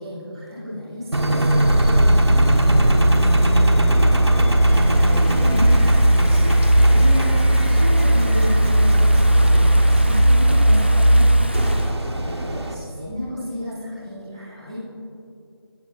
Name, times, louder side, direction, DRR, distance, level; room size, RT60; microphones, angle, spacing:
voice 1, 0.0-1.9 2.7-6.5 6.8-11.3 12.0-14.8, left 1 dB, ahead, -11 dB, 1.2 m, -32 dB
Engine, 1.1-12.7, right 1 dB, 90° right, 1.4 m, -16 dB
Stream / Ocean, 4.7-11.9, equal, 25° right, 0.4 m, -35 dB
15.0 x 8.4 x 3.0 m, 2.6 s
figure-of-eight pair, 175°, 14 cm